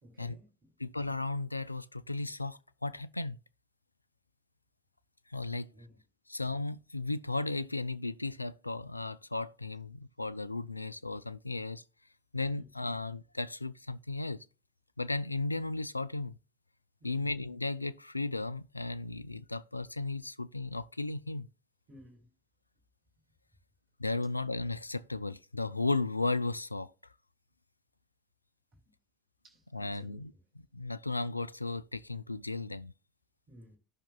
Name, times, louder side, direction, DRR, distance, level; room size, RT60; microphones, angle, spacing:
voice 1, 0.0-0.7 5.7-6.0 12.5-12.7 17.0-17.3 21.9-22.3 28.7-28.8 29.4-30.2 33.5-33.8, equal, 40° right, 2.5 m, -56 dB
voice 2, 0.8-3.4 5.3-5.7 6.3-11.8 12.3-14.5 15.0-16.3 17.0-21.5 24.0-26.9 29.7-30.3 30.7-32.9, left 2 dB, 85° left, 0.3 m, -35 dB
14.0 x 5.8 x 2.2 m
figure-of-eight pair, 70°, 0 cm